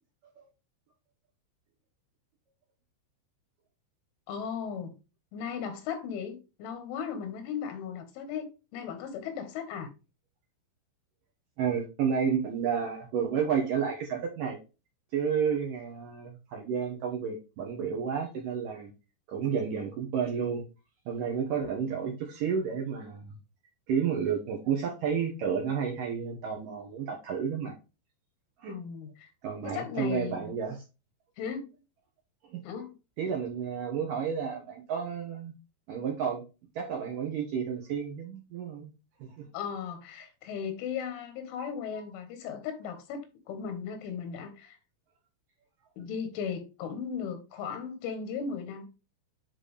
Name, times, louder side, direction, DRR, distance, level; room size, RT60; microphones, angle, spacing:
voice 1, 4.3-4.9 5.3-9.9 28.7-29.3 29.6-30.5 31.4-31.7 32.6-32.9 39.5-44.8 46.0-48.8, left 7 dB, 85° left, 4.0 m, -36 dB
voice 2, 11.6-14.6 15.1-18.9 19.3-20.6 21.1-23.3 23.9-27.7 28.6-28.7 29.4-30.8 32.5-32.6 33.2-35.5 35.9-36.4 36.8-38.9 39.2-39.4, right 7 dB, 70° right, 2.1 m, -31 dB
9.6 x 4.0 x 3.4 m
omnidirectional pair, 5.5 m